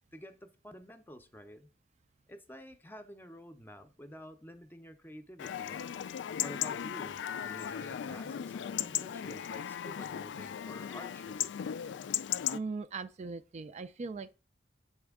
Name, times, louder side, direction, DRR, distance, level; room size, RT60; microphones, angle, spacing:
voice 1, 0.1-1.7 2.3-5.8 6.4-11.6, equal, 10° left, 0.6 m, -50 dB
Chatter / Livestock farm animals working animals / Chirp tweet, 5.4-12.6, left 10 dB, 75° left, 0.3 m, -37 dB
voice 2, 12.5-14.3, right 4 dB, 40° right, 0.3 m, -39 dB
7.9 x 4.2 x 3.5 m
head